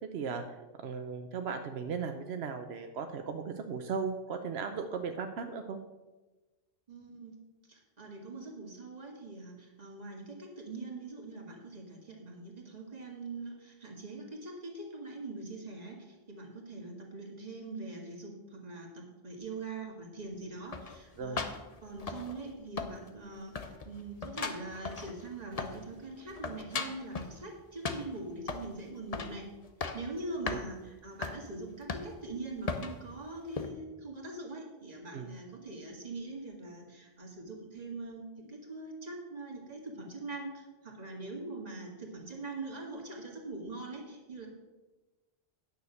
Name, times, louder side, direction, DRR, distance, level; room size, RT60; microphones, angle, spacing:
voice 1, 0.1-0.4 0.8-5.8 21.2-21.4 30.4-30.6 35.1-35.3, right 5 dB, 85° right, 6 dB, 1.0 m, -36 dB
voice 2, 6.9-7.4 7.6-21.5 21.8-29.5 29.9-44.5, right 2 dB, 40° right, 0 dB, 2.0 m, -43 dB
sound 1, 20.7-22.5 22.8-23.3 23.5-25.9 26.2-27.4 27.8-28.7 29.1-29.4 29.6-30.1 30.5-30.6 31.2-31.4 31.9-32.3 32.7-33.0 33.5-33.7, left 4 dB, 40° left, 0.8 m, -37 dB
9.7 x 6.4 x 6.4 m, 1.2 s
omnidirectional pair, 1.0 m